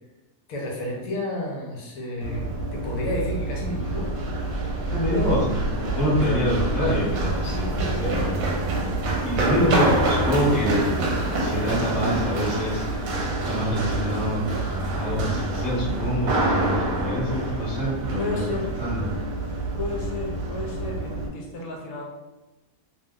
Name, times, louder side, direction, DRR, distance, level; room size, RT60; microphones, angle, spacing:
voice 1, 0.5-4.1 5.1-5.4 6.2-6.3 8.0-8.2 8.8-9.0 18.2-18.7 19.8-22.0, left 2 dB, 75° left, -1 dB, 1.1 m, -32 dB
Run, 2.2-21.3, right 2 dB, 75° right, 1.0 m, -27 dB
voice 2, 4.9-8.4 9.2-11.0 11.4-13.1 13.4-18.5 18.8-19.1, equal, 20° left, -7 dB, 0.7 m, -26 dB
2.6 x 2.1 x 3.5 m, 1.1 s
omnidirectional pair, 1.5 m